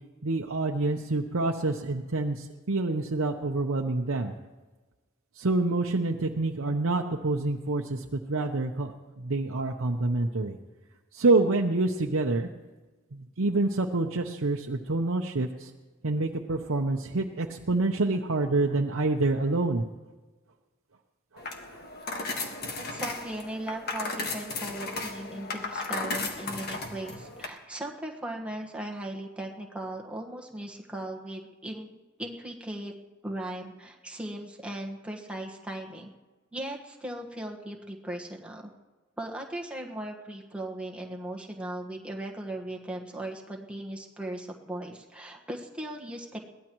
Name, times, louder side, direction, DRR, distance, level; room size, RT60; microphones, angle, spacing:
voice 1, 0.2-4.3 5.4-8.9 9.2-10.6 11.1-12.5 13.1-15.7 16.0-19.8, right 2 dB, 80° right, 1 dB, 0.8 m, -27 dB
sound 1, 21.4-27.5, left 3 dB, 50° left, 1.6 m, -35 dB
voice 2, 22.8-32.9 33.2-36.1 36.5-38.7 39.2-46.5, right 1 dB, 5° right, 0 dB, 1.4 m, -38 dB
22.0 x 16.5 x 3.1 m, 1.3 s
head